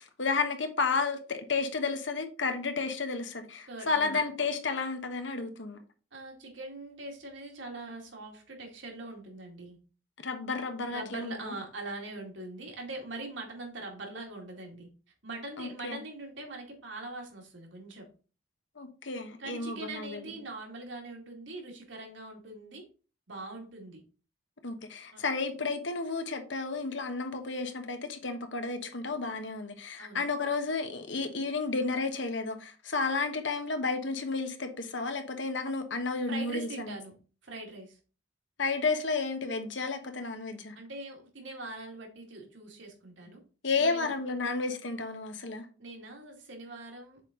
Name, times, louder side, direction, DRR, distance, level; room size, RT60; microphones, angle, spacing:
voice 1, 0.0-5.8 10.2-11.5 15.6-16.0 18.8-20.2 24.6-36.9 38.6-40.7 43.6-45.7, left 4 dB, 70° left, 1.2 m, -32 dB
voice 2, 3.7-4.2 6.1-9.8 10.9-14.9 15.2-18.1 19.4-22.8 23.3-24.0 25.1-25.2 30.0-30.3 36.3-37.2 37.4-38.0 40.7-43.4 43.8-44.1 45.8-47.2, right 2 dB, 70° right, 2.3 m, -42 dB
7.3 x 4.1 x 3.8 m
head